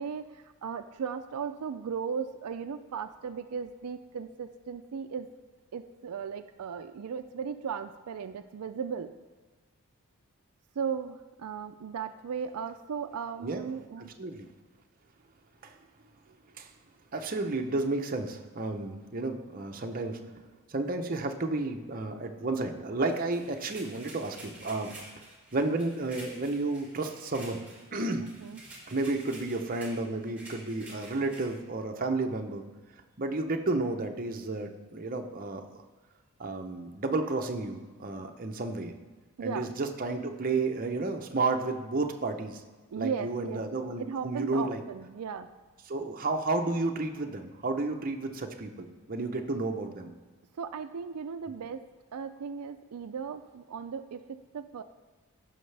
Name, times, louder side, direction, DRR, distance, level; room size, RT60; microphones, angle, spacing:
voice 1, 0.0-5.3 5.7-9.1 10.8-14.1 28.4-28.6 39.4-39.7 42.9-43.6 44.0-45.5 50.6-54.8, right 6 dB, 85° right, 9 dB, 0.4 m, -36 dB
voice 2, 14.0-14.5 15.6-15.8 16.5-16.7 17.1-20.4 20.7-25.0 25.5-28.3 28.9-32.6 33.2-35.8 36.4-38.9 39.4-42.6 42.9-44.8 45.9-50.1, right 2 dB, 40° right, 4 dB, 0.7 m, -32 dB
sound 1, 23.1-31.6, right 1 dB, 5° right, 2.1 m, -50 dB
14.5 x 5.7 x 3.3 m, 1.4 s
head